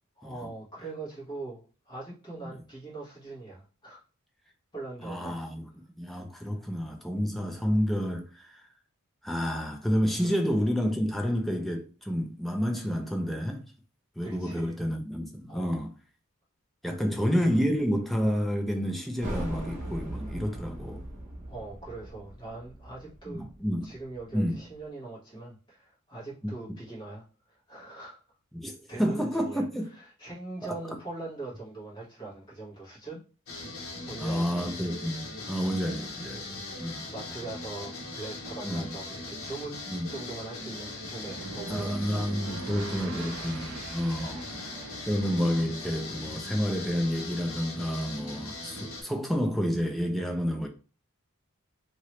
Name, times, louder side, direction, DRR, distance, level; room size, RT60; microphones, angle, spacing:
voice 1, 0.2-4.0 4.7-5.4 6.3-6.6 7.3-7.5 10.2-10.3 14.2-14.7 15.5-15.8 17.0-17.2 21.5-23.5 23.8-28.2 28.9-29.7 29.9-33.2 34.0-34.6 35.4-35.5 36.5-36.6 37.1-39.8 40.1-42.2 44.2-44.5, right 2 dB, 20° left, 1.5 m, -41 dB
voice 2, 5.0-5.7 6.0-8.7 9.2-13.6 14.2-15.9 16.8-21.0 23.3-23.9 24.3-24.6 28.5-29.9 30.6-30.7 34.2-37.1 38.6-38.9 39.9-40.1 41.7-44.4 45.1-50.7, equal, ahead, 0.4 m, -29 dB
sound 1, 19.2-24.5, right 1 dB, 35° right, 1.2 m, -39 dB
sound 2, 33.5-49.0, left 2 dB, 75° left, 1.1 m, -40 dB
sound 3, 41.2-46.3, right 4 dB, 65° right, 0.4 m, -43 dB
2.9 x 2.8 x 3.0 m
head